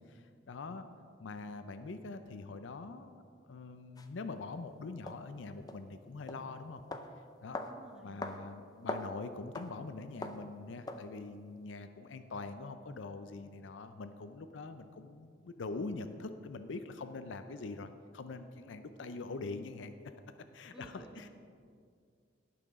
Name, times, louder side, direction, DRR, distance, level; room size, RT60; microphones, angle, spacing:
voice 1, 0.1-0.9 1.2-6.8 7.4-7.6 8.0-19.9 20.5-21.3, left 3 dB, 75° left, 9 dB, 0.5 m, -44 dB
sound 1, 4.0-4.1 5.1-5.2 5.7-5.8 6.3-6.4 6.9-7.1 7.5-7.7 8.2-8.4 8.7-9.1 9.5-9.7 10.2-10.4 10.9-11.1, left 2 dB, 20° left, 0.5 m, -40 dB
voice 2, 7.5-8.2 20.7-21.3, right 1 dB, 5° right, 1 dB, 1.0 m, -54 dB
17.5 x 5.9 x 3.7 m, 2.3 s
head